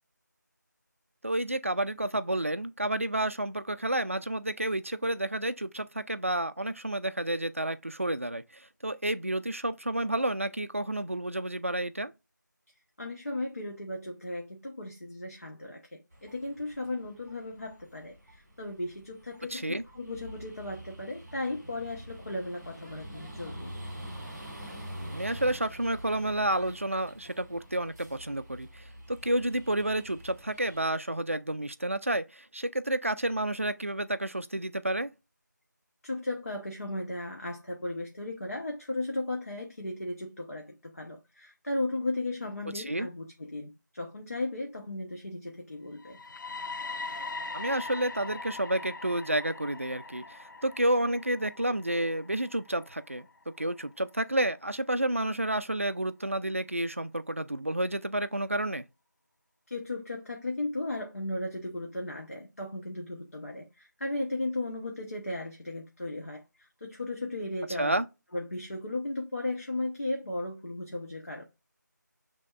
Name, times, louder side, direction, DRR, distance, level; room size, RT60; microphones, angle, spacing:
voice 1, 1.2-12.1 19.5-19.8 25.1-35.1 42.7-43.1 47.5-53.3 53.6-58.8 67.8-68.1, right 1 dB, 45° right, 0.4 m, -30 dB
voice 2, 13.0-23.7 36.0-46.2 59.7-68.0 68.3-71.4, left 2 dB, 50° left, 0.8 m, -36 dB
sound 1, 16.1-30.9, equal, 10° left, 0.9 m, -46 dB
sound 2, 46.0-53.9, left 3 dB, 80° left, 0.4 m, -41 dB
6.3 x 3.4 x 2.3 m
figure-of-eight pair, 180°, 10 cm